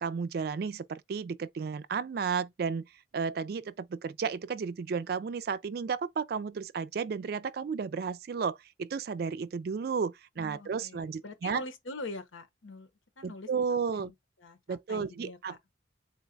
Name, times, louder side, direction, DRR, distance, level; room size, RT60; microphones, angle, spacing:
voice 1, 0.0-2.9 3.1-11.6 13.2-14.1 14.7-15.5, right 6 dB, 50° right, 0.3 m, -33 dB
voice 2, 10.4-12.9 13.2-13.5 13.9-14.1 14.4-15.6, left 2 dB, 90° left, 0.9 m, -43 dB
3.9 x 2.2 x 3.9 m
head